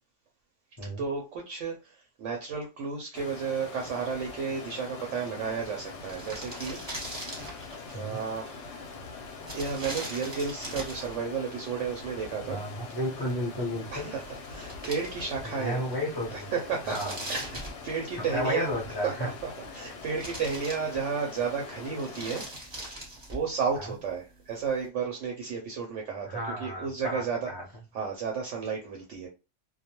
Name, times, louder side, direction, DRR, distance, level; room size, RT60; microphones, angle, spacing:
voice 1, 0.8-6.8 7.1-7.6 7.9-8.9 9.5-12.6 13.9-15.9 16.3-17.0 17.3-17.5 17.8-18.8 19.0-22.4 23.3-27.5 27.9-29.3, right 5 dB, 70° right, 0.8 m, -33 dB
Stream, 3.1-22.4, left 4 dB, 65° left, 0.8 m, -43 dB
sound 1, 5.7-5.8 5.9-7.8 9.4-11.2 13.9-14.0 14.2-15.6 15.9-16.0 16.6-18.3 19.3-19.9 20.2-21.3 21.8-23.5, right 1 dB, 25° right, 0.8 m, -40 dB
voice 2, 12.4-14.2 15.4-16.5 16.8-17.2 18.1-19.3 23.8-23.9 26.2-27.6, equal, 25° left, 0.5 m, -33 dB
2.2 x 2.1 x 2.8 m
omnidirectional pair, 1.4 m